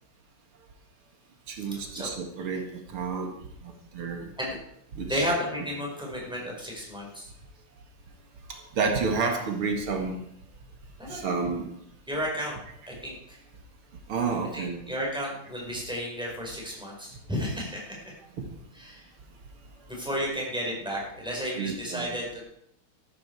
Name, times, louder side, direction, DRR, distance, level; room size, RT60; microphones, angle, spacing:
voice 1, 1.5-3.3 3.6-4.3 4.9-5.2 8.5-10.2 11.1-11.7 14.1-14.8 21.6-22.1, right 4 dB, 85° right, 3 dB, 2.8 m, -30 dB
voice 2, 5.0-7.3 11.0-11.4 12.1-12.6 12.9-13.4 14.5-17.8 18.7-19.1 19.9-22.4, equal, ahead, -3 dB, 5.0 m, -32 dB
13.5 x 13.0 x 4.8 m, 0.74 s
omnidirectional pair, 2.3 m